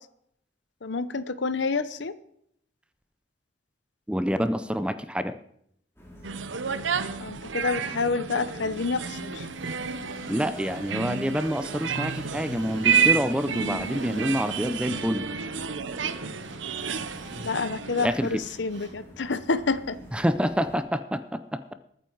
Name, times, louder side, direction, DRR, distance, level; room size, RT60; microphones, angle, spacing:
voice 1, 0.8-2.1 7.2-9.5 16.9-17.1 17.4-20.0, left 4 dB, 70° left, 15 dB, 0.8 m, -28 dB
voice 2, 4.1-5.3 10.3-15.3 18.0-18.4 20.1-21.7, equal, 5° right, 12 dB, 0.6 m, -27 dB
sound 1, 6.0-20.8, left 1 dB, 15° left, 3.3 m, -47 dB
sound 2, 6.2-18.1, right 6 dB, 80° right, 0.9 m, -30 dB
Drill, 8.6-14.9 16.3-17.6 18.0-19.0, right 3 dB, 65° right, 3.8 m, -50 dB
21.0 x 9.3 x 4.7 m, 0.71 s
head